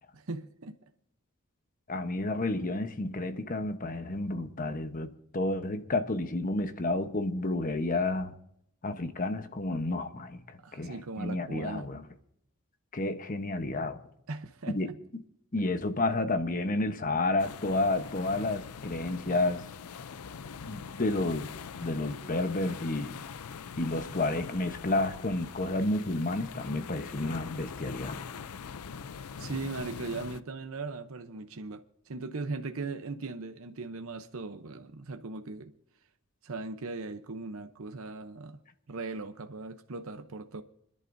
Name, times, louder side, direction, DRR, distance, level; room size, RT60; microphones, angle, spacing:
voice 1, 0.1-0.7 10.6-11.9 14.3-15.0 29.4-35.7 36.4-38.6 38.9-40.6, right 3 dB, 65° right, 0.8 m, -39 dB
voice 2, 1.9-8.3 8.8-12.0 12.9-14.0 14.7-14.9 15.1-15.2 15.5-19.7 20.7-21.5 21.8-23.2 23.8-28.2, left 2 dB, 40° left, 1.0 m, -31 dB
sound 1, 17.4-30.4, left 6 dB, 85° left, 0.5 m, -43 dB
29.0 x 11.0 x 2.7 m
head